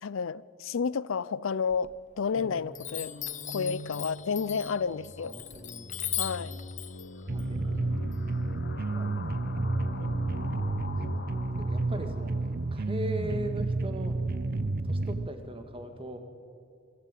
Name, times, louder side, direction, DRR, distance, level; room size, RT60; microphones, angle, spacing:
voice 1, 0.0-3.1 3.5-5.3 6.2-6.6 10.0-10.7, left 5 dB, 90° left, 0.5 m, -31 dB
Chime, 1.7-2.4 2.7-8.6, left 12 dB, 40° left, 0.8 m, -39 dB
sound 1, 2.3-13.1, left 2 dB, 60° left, 1.1 m, -41 dB
voice 2, 5.2-5.9 6.2-6.6 7.3-8.0 8.8-9.3 9.6-10.1 11.1-12.3 12.7-14.2 14.8-16.2, right 1 dB, 30° right, 2.1 m, -40 dB
sound 2, 7.3-15.3, right 2 dB, 50° right, 0.7 m, -31 dB
24.5 x 15.0 x 9.2 m
head